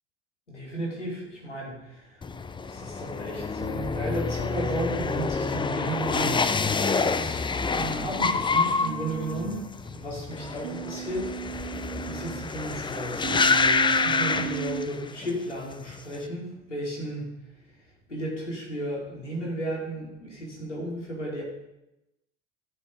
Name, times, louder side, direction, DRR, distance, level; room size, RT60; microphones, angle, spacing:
voice 1, 0.5-2.3 2.6-11.8 12.0-17.3 17.6-21.4, right 1 dB, 85° left, -3 dB, 4.4 m, -34 dB
sound 1, 2.2-15.3 15.6-16.2, left 4 dB, 15° left, 0.7 m, -27 dB
Human voice, 8.8-9.6 10.6-12.4 13.2-14.9, right 11 dB, 75° right, 0.6 m, -35 dB
15.0 x 7.8 x 5.2 m, 0.93 s
figure-of-eight pair, 70°, 35 cm